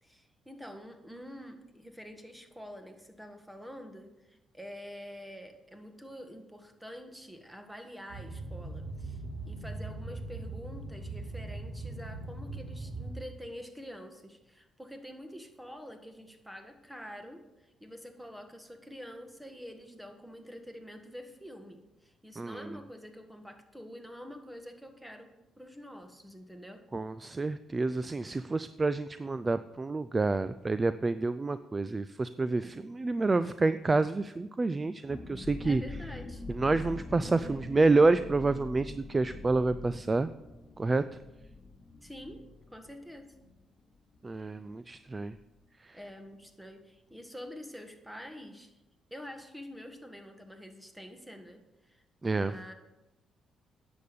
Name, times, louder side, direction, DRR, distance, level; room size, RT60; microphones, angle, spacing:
voice 1, 0.0-26.9 35.6-36.4 37.1-37.6 42.0-43.4 45.9-48.7 49.1-52.7, equal, 5° right, 6 dB, 1.5 m, -47 dB
Boat Water vehicle, 8.1-13.1, right 2 dB, 75° right, 4.6 m, -40 dB
voice 2, 22.4-22.7 26.9-35.8 36.5-40.3 40.8-41.0 44.2-45.3 45.8-46.0 52.2-52.5, right 3 dB, 25° right, 13 dB, 0.4 m, -28 dB
sound 1, 35.0-44.5 44.7-44.8 45.2-45.4, left 3 dB, 35° left, 2.6 m, -45 dB
10.0 x 7.0 x 6.8 m, 0.99 s
cardioid pair, 90°, 0 cm